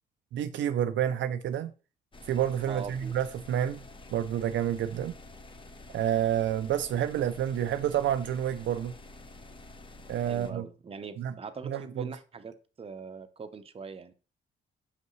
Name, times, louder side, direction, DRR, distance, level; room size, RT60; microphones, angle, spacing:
voice 1, 0.3-1.7 2.3-3.8 4.1-5.2 5.9-8.9 10.1-10.6 11.2-11.3 11.6-12.1, right 10 dB, 70° right, 0.5 m, -29 dB
sound 1, 2.1-10.5, left 2 dB, 25° left, 0.8 m, -49 dB
voice 2, 2.7-3.1 10.3-14.1, right 5 dB, 30° right, 0.7 m, -42 dB
5.8 x 5.4 x 3.1 m
cardioid pair, 90°, 20 cm